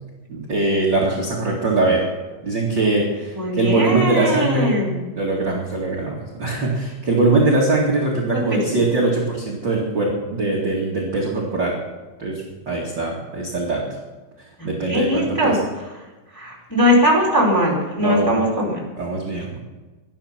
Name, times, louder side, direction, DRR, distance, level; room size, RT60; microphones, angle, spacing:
voice 1, 0.3-2.0 2.4-4.7 5.1-11.7 12.2-13.8 14.6-15.5 18.0-18.3 19.0-19.6, right 2 dB, 35° right, -3 dB, 2.5 m, -21 dB
voice 2, 3.3-5.0 14.6-15.6 16.3-18.9, equal, 5° left, -3 dB, 4.1 m, -20 dB
18.5 x 12.0 x 6.0 m, 1.2 s
omnidirectional pair, 4.4 m